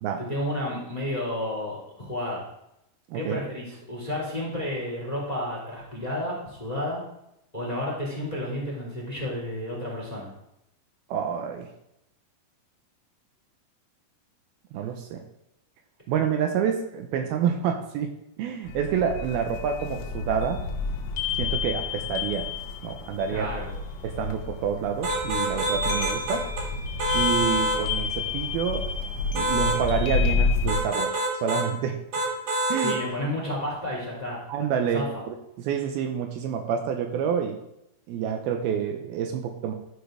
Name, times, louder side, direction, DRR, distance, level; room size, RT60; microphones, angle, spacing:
voice 1, 0.2-2.4 3.1-7.0 7.5-10.3 23.3-23.7 32.8-34.4 34.9-35.1, left 1 dB, 10° left, -3 dB, 2.3 m, -31 dB
voice 2, 11.1-11.7 14.7-15.2 16.1-18.1 18.4-20.6 21.4-22.5 22.8-23.5 24.0-26.5 27.1-28.8 29.3-32.0 32.7-33.0 34.5-37.6 38.1-39.7, right 7 dB, 80° right, 5 dB, 2.6 m, -28 dB
sound 1, 18.7-30.8, left 4 dB, 80° left, 3.0 m, -29 dB
sound 2, 25.0-26.7 27.0-27.8 29.3-29.8 30.7-31.7 32.1-33.0, right 1 dB, 55° right, 2.4 m, -26 dB
13.0 x 5.1 x 5.0 m, 0.83 s
omnidirectional pair, 4.6 m